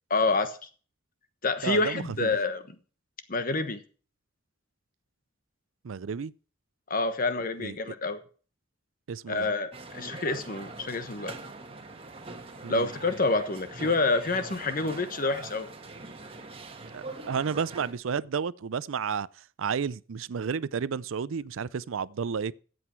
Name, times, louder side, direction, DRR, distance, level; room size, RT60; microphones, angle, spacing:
voice 1, 0.1-0.6 1.4-2.7 3.3-3.8 6.9-8.2 9.3-11.4 12.7-15.7, left 3 dB, 45° left, 1.2 m, -28 dB
voice 2, 1.6-2.3 5.8-6.3 7.6-7.8 9.1-9.5 12.6-12.9 16.9-19.3 19.6-22.5, right 6 dB, 80° right, 0.5 m, -31 dB
sound 1, 9.7-17.9, right 3 dB, 30° right, 1.4 m, -43 dB
14.0 x 8.0 x 4.5 m
head